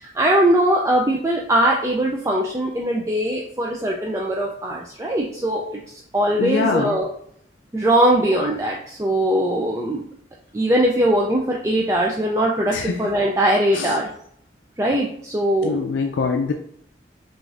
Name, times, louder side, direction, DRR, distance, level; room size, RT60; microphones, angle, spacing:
voice 1, 0.0-5.8 6.1-7.1 7.7-10.1 10.5-14.1 14.8-15.9, right 1 dB, 15° right, -1 dB, 0.4 m, -21 dB
voice 2, 6.4-7.0 12.7-13.0 13.7-14.0 15.6-16.5, left 4 dB, 85° left, 3 dB, 0.4 m, -23 dB
6.1 x 2.6 x 2.5 m, 0.66 s
head